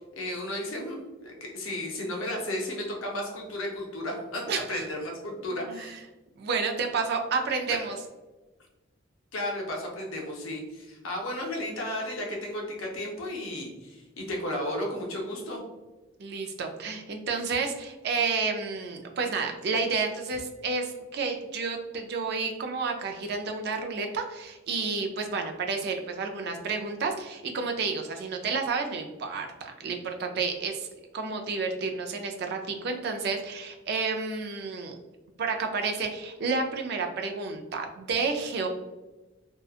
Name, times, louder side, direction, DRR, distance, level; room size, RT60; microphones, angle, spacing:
voice 1, 0.1-6.0 7.7-7.8 9.3-15.6, left 1 dB, 85° left, 0 dB, 0.7 m, -34 dB
voice 2, 4.5-4.9 5.5-6.0 6.4-7.9 16.2-30.9 31.1-34.9 35.4-38.7, right 4 dB, 55° right, 4 dB, 0.3 m, -30 dB
2.7 x 2.2 x 2.3 m, 1.1 s
head